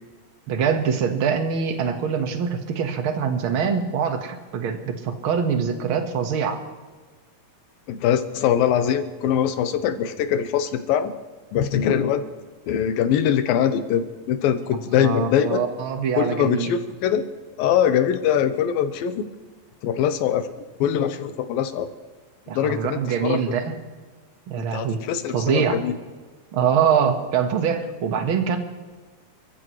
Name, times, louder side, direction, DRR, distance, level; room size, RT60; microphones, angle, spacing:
voice 1, 0.5-6.6 14.9-16.7 22.5-23.7 24.5-25.0 25.3-25.8 26.5-28.6, right 7 dB, 55° right, 6 dB, 1.5 m, -24 dB
voice 2, 7.9-11.1 11.5-12.3 12.7-15.6 16.2-17.3 17.6-19.3 19.8-20.5 20.8-21.9 22.5-23.4 24.7-25.9, left 9 dB, 80° left, 10 dB, 2.7 m, -22 dB
28.0 x 14.5 x 3.2 m, 1.4 s
omnidirectional pair, 4.2 m